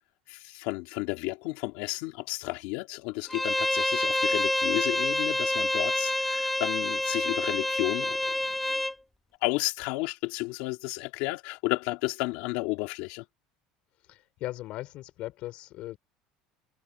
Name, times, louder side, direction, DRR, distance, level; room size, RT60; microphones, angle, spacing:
voice 1, 0.3-8.5 9.4-13.2, left 22 dB, 70° left, 2.8 m, -32 dB
Bowed string instrument, 3.3-8.9, left 1 dB, 5° left, 1.2 m, -27 dB
voice 2, 14.1-16.0, left 16 dB, 50° left, 3.9 m, -38 dB
cardioid pair, 165°, 3 cm